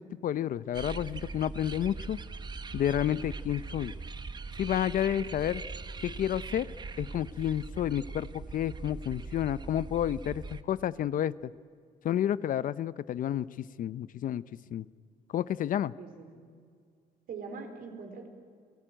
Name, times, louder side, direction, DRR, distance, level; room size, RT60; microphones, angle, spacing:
voice 1, 0.0-2.2 2.7-3.9 4.6-5.6 6.0-6.7 7.0-11.5 12.0-14.4 14.7-14.8 15.3-15.9, left 11 dB, 55° left, 17 dB, 0.7 m, -30 dB
sound 1, 0.7-10.6, right 3 dB, 25° right, 1.1 m, -41 dB
voice 2, 16.0-16.5 17.3-18.3, right 5 dB, 60° right, 5 dB, 4.7 m, -42 dB
29.0 x 18.0 x 9.1 m, 2.2 s
cardioid pair, 110°, 17 cm